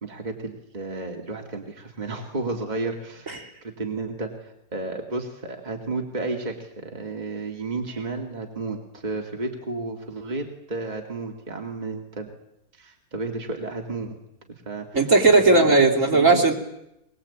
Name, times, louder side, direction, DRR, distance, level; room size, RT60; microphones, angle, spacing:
voice 1, 0.0-3.4 3.6-12.3 12.8-14.2 14.7-15.1 15.5-16.4, right 3 dB, 25° right, 2 dB, 2.6 m, -32 dB
voice 2, 14.9-16.5, right 3 dB, 50° right, 0 dB, 3.6 m, -17 dB
22.5 x 22.0 x 8.7 m, 0.84 s
omnidirectional pair, 1.7 m